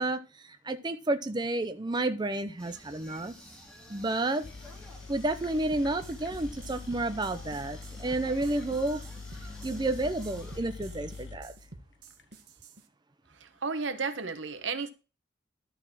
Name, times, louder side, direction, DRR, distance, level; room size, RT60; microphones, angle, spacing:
voice 1, 0.0-3.3 3.9-4.5 5.1-9.0 9.6-11.5, right 2 dB, 25° right, 0.6 m, -31 dB
sound 1, 2.6-10.6, equal, 5° left, 2.2 m, -51 dB
sound 2, 4.1-4.2 4.4-12.2, left 4 dB, 75° left, 0.8 m, -44 dB
sound 3, 5.7-12.8, right 2 dB, 65° right, 1.3 m, -49 dB
voice 2, 13.4-14.9, right 4 dB, 80° right, 1.1 m, -33 dB
11.5 x 4.1 x 6.0 m
head